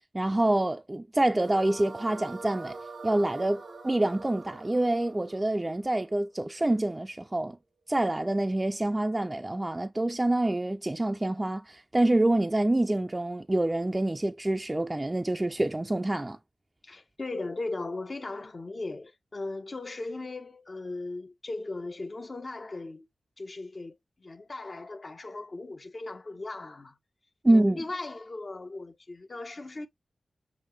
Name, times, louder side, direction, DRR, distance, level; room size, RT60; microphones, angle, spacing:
voice 1, 0.1-2.8 3.0-7.6 7.9-16.4 27.4-27.8, right 1 dB, 25° right, 0.5 m, -26 dB
sound 1, 1.4-6.6, right 3 dB, 80° right, 1.1 m, -44 dB
voice 2, 16.8-23.1 23.4-27.0 27.5-29.9, left 2 dB, 50° left, 1.2 m, -38 dB
6.4 x 2.4 x 3.2 m
cardioid pair, 40°, 0 cm